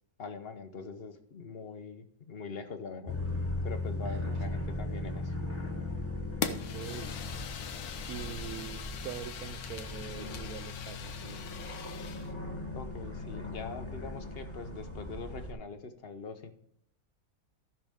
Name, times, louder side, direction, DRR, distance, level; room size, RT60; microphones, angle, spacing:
voice 1, 0.2-3.2 3.6-5.4 12.7-16.5, left 4 dB, 45° left, 1.0 m, -43 dB
sound 1, 3.0-15.5, left 2 dB, 10° left, 1.6 m, -38 dB
voice 2, 4.0-4.4 6.4-7.2 8.1-11.6, right 10 dB, 85° right, 1.1 m, -44 dB
Fire, 6.4-12.3, left 8 dB, 90° left, 1.3 m, -41 dB
15.0 x 5.9 x 3.5 m
omnidirectional pair, 1.5 m